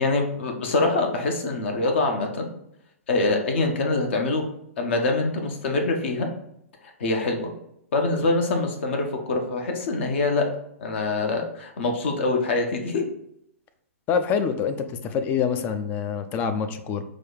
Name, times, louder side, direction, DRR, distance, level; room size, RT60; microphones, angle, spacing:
voice 1, 0.0-2.4 3.1-4.4 4.8-6.3 7.0-7.5 7.9-10.4 10.8-13.0, left 3 dB, 50° left, 3 dB, 0.8 m, -24 dB
voice 2, 14.1-17.0, left 6 dB, 25° left, 9 dB, 0.4 m, -26 dB
4.8 x 2.3 x 4.0 m, 0.75 s
figure-of-eight pair, 115°, 8 cm